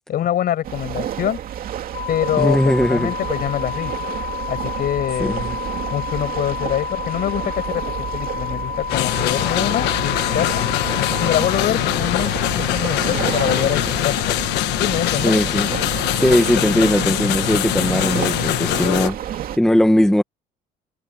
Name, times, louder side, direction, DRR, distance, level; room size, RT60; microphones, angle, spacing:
voice 1, 0.1-1.4 2.1-3.9 4.5-5.5 5.9-10.7 11.1-14.4 14.8-15.3, left 11 dB, 60° left, 6.3 m, -24 dB
sound 1, 0.6-19.6, right 10 dB, 60° right, 2.6 m, -30 dB
sound 2, 1.9-11.5, left 8 dB, 45° left, 6.7 m, -30 dB
voice 2, 2.4-3.1 5.2-5.6 15.2-15.7 16.2-19.2 19.6-20.2, left 1 dB, 5° left, 1.5 m, -18 dB
sound 3, 8.9-19.1, left 16 dB, 90° left, 1.3 m, -22 dB
cardioid pair, 110°, 17 cm